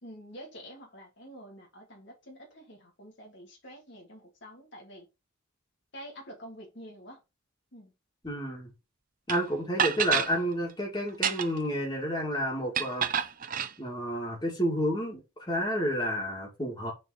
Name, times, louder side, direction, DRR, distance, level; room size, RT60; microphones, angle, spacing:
voice 1, 0.0-5.1 5.9-7.2 7.7-7.9, equal, 55° left, 2.0 m, -47 dB
voice 2, 8.2-8.7 9.3-13.2 13.8-16.9, equal, 20° left, 2.4 m, -30 dB
sound 1, 9.3-9.4 9.8-10.3 11.1-11.7 12.7-13.7, right 8 dB, 40° right, 0.6 m, -28 dB
6.4 x 4.4 x 4.2 m
head